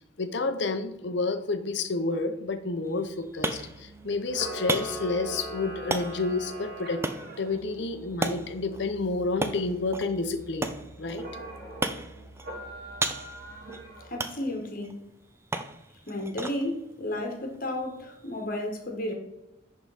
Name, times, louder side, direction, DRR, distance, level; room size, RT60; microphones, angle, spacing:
voice 1, 0.2-7.0 7.4-11.3, left 3 dB, 65° left, 9 dB, 0.7 m, -30 dB
sound 1, 2.8-18.4, right 2 dB, 15° right, 0.4 m, -37 dB
Musical instrument, 3.3-14.1, right 2 dB, 10° left, 2.2 m, -50 dB
Camera, 4.2-7.6 11.1-11.9 12.4-14.2, right 1 dB, 50° right, 2.0 m, -40 dB
voice 2, 14.0-15.0 16.1-19.1, left 1 dB, 45° left, 3 dB, 1.4 m, -33 dB
10.5 x 3.7 x 4.1 m, 0.93 s
head